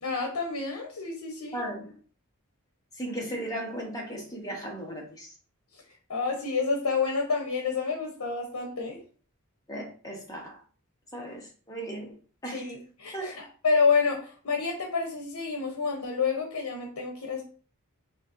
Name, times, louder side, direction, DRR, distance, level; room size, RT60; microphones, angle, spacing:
voice 1, 0.0-1.6 6.1-9.0 12.5-17.4, left 5 dB, 80° left, 0.7 m, -28 dB
voice 2, 1.5-1.9 2.9-5.3 9.7-10.6 11.1-12.2 12.4-12.7 13.1-13.4, right 1 dB, 15° left, 0.8 m, -36 dB
3.9 x 2.8 x 2.4 m
head